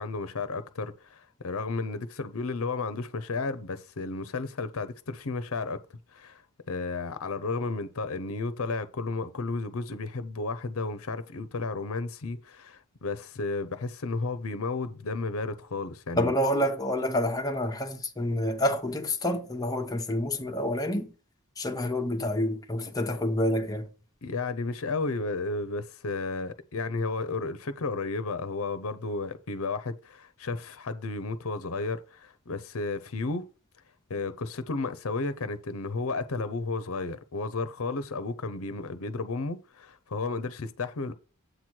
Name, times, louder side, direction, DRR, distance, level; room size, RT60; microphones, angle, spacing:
voice 1, 0.0-5.8 6.1-6.4 6.7-16.3 24.2-33.5 34.1-41.1, left 3 dB, 65° left, 0.7 m, -33 dB
voice 2, 16.2-21.1 21.6-23.9, left 1 dB, 15° left, 0.9 m, -28 dB
7.9 x 3.1 x 6.1 m
head